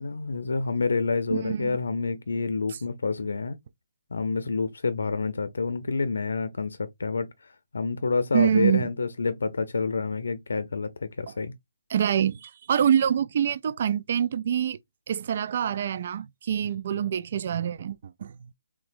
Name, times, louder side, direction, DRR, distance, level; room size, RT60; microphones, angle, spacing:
voice 1, 0.0-3.6 4.1-7.3 7.7-11.5, left 4 dB, 75° left, 0.5 m, -28 dB
voice 2, 1.3-1.8 2.7-2.8 8.3-8.9 11.9-14.8 15.1-18.4, right 9 dB, 45° right, 0.3 m, -25 dB
3.7 x 2.9 x 2.5 m
hypercardioid pair, 155°, 0 cm